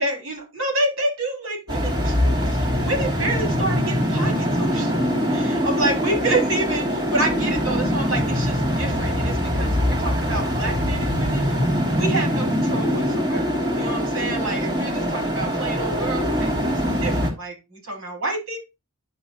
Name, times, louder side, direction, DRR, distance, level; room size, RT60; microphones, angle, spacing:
voice 1, 0.0-4.9 5.3-11.6 11.9-18.6, right 2 dB, 80° right, 1 dB, 5.3 m, -28 dB
sound 1, 1.7-17.3, equal, 20° right, 2.7 m, -23 dB
11.0 x 3.8 x 4.2 m, 0.25 s
head